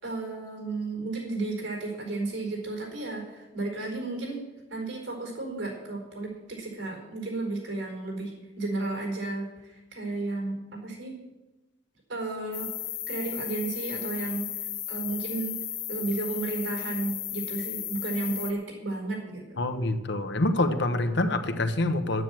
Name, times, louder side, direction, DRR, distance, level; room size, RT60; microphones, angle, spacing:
voice 1, 0.0-4.4 4.7-8.3 8.6-11.1 12.1-12.7 13.1-15.6 15.9-19.6, right 2 dB, 80° right, -1 dB, 4.5 m, -33 dB
sound 1, 12.5-18.5, left 12 dB, 90° left, 1.3 m, -35 dB
voice 2, 19.6-22.2, left 2 dB, 65° left, 8 dB, 1.1 m, -26 dB
10.0 x 9.7 x 7.8 m, 1.1 s
head